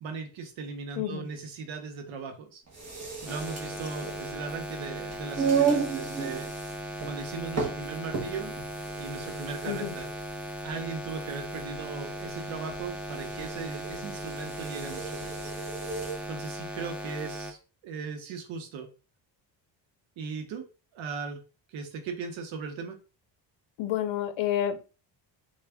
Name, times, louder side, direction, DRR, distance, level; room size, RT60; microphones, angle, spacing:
voice 1, 0.0-2.6 3.2-6.5 7.0-8.5 9.0-10.1 10.6-15.4 16.3-17.6 17.8-18.9 20.2-20.6 20.9-21.4 21.7-23.0, right 5 dB, 90° right, 0.9 m, -38 dB
sound 1, 2.7-16.2, right 6 dB, 35° right, 1.1 m, -34 dB
sound 2, 3.3-17.5, right 1 dB, 5° right, 0.4 m, -38 dB
voice 2, 23.8-24.8, left 11 dB, 80° left, 0.6 m, -29 dB
3.4 x 2.4 x 3.4 m
cardioid pair, 135°, 45 cm